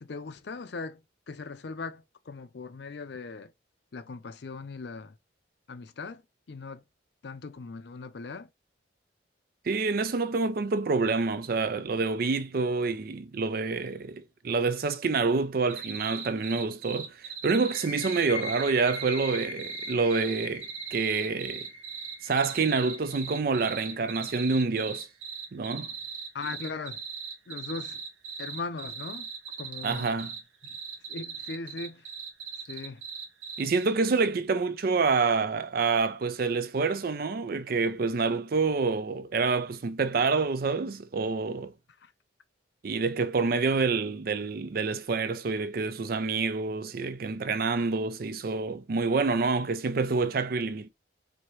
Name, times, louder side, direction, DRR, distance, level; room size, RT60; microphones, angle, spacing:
voice 1, 0.0-3.5 3.9-5.1 5.7-6.2 6.5-6.8 7.2-8.5 26.3-27.0 27.5-28.0 28.4-29.3 29.6-30.1 30.6-30.8 31.1-32.1 32.7-33.0 42.0-42.1, left 4 dB, 60° left, 0.5 m, -39 dB
voice 2, 9.7-21.7 22.2-25.1 25.5-25.9 29.8-30.3 33.6-41.7 42.8-50.9, right 4 dB, 50° right, 0.4 m, -27 dB
sound 1, 15.7-33.8, right 6 dB, 90° right, 0.9 m, -39 dB
sound 2, 17.6-25.0, left 2 dB, 70° right, 1.4 m, -42 dB
4.3 x 2.7 x 3.1 m
head